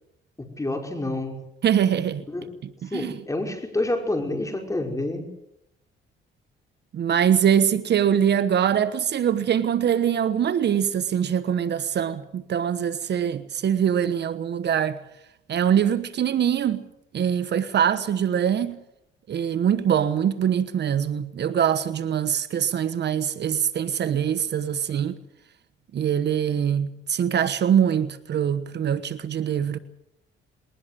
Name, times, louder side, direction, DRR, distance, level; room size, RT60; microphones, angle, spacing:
voice 1, 0.4-1.4 2.3-2.6 2.9-5.3, left 2 dB, 15° left, 5.4 m, -28 dB
voice 2, 1.6-2.2 2.9-3.2 6.9-15.0 15.5-16.8 17.1-18.8 19.3-25.1 25.9-29.8, right 9 dB, 60° right, 1.2 m, -23 dB
21.0 x 19.5 x 7.7 m
cardioid pair, 90°, 20 cm